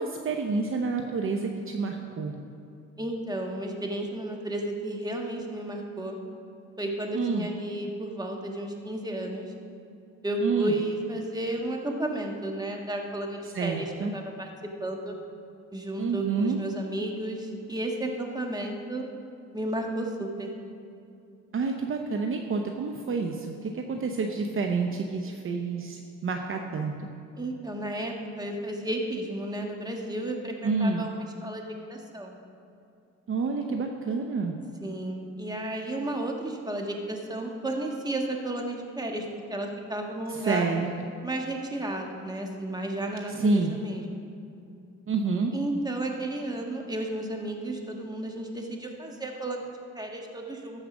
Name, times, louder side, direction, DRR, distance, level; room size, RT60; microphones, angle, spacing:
voice 1, 0.0-2.3 7.1-7.5 10.4-10.8 13.5-14.1 16.0-16.6 21.5-26.9 30.6-31.0 33.3-34.6 40.3-40.9 43.3-43.8 45.1-45.5, right 4 dB, 45° right, 3 dB, 0.7 m, -28 dB
voice 2, 3.0-6.2 6.8-9.5 10.2-14.5 14.8-15.1 15.7-19.1 19.5-20.5 27.4-31.6 31.9-32.3 34.8-40.7 41.2-44.2 45.5-50.9, right 1 dB, 15° right, 2 dB, 1.4 m, -33 dB
14.0 x 4.9 x 6.1 m, 2.7 s
cardioid pair, 90°, 30 cm